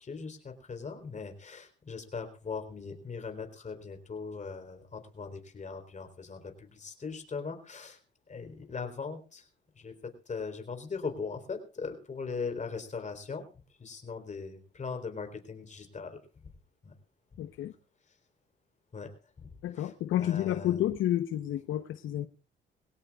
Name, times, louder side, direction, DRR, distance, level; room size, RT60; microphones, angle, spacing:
voice 1, 0.0-8.0 8.3-9.5 9.8-13.4 13.8-16.2 16.8-16.9 18.9-19.1 19.4-20.8, left 5 dB, 35° left, 6 dB, 3.9 m, -40 dB
voice 2, 17.4-17.7 19.6-22.3, left 12 dB, 80° left, 10 dB, 0.9 m, -30 dB
22.5 x 17.0 x 2.4 m, 0.34 s
cardioid pair, 90°, 20 cm